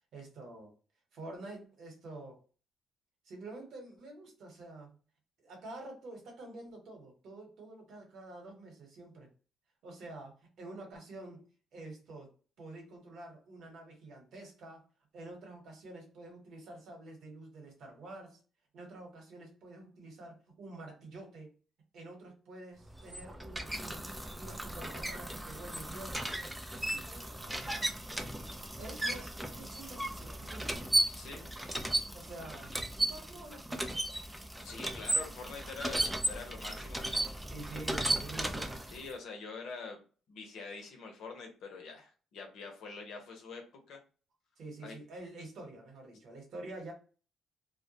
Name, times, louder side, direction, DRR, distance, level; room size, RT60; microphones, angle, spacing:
voice 1, 0.1-0.7 1.1-2.4 3.2-4.9 5.4-9.3 9.8-12.3 12.6-14.9 15.1-18.4 18.7-21.5 21.9-24.1 24.4-26.2 26.8-27.9 28.8-30.8 32.1-34.0 37.5-38.8 44.6-46.9, right 2 dB, 75° right, 1 dB, 1.1 m, -48 dB
sound 1, 22.9-39.1, right 1 dB, 10° right, 0.4 m, -35 dB
voice 2, 31.1-31.8 34.6-37.3 38.9-40.0 40.3-44.0 44.8-45.0, left 4 dB, 80° left, 2 dB, 0.8 m, -45 dB
2.2 x 2.1 x 2.7 m, 0.37 s
cardioid pair, 90°, 0 cm